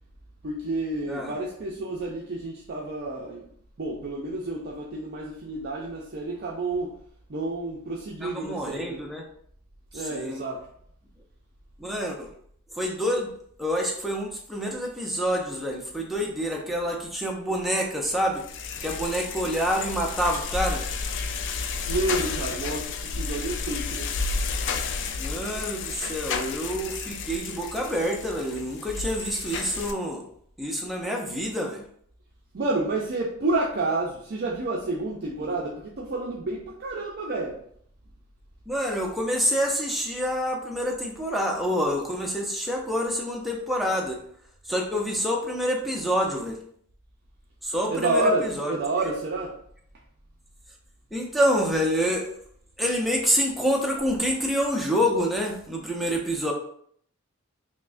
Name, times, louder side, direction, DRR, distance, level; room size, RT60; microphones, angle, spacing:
voice 1, 0.4-3.5 3.8-7.0 7.3-9.0 9.9-10.7 21.9-24.1 32.5-37.6 47.9-49.6, right 2 dB, 45° right, -2 dB, 0.5 m, -29 dB
voice 2, 8.2-9.3 9.9-10.4 11.8-12.3 12.7-13.3 13.6-18.4 18.8-20.8 25.2-30.2 30.6-31.8 35.4-35.5 38.7-44.2 44.7-46.6 47.6-48.7 51.1-52.3 52.8-56.5, equal, ahead, -1 dB, 0.5 m, -27 dB
sound 1, 18.4-29.9, left 4 dB, 55° left, 0.3 m, -32 dB
5.7 x 2.1 x 2.5 m, 0.64 s
head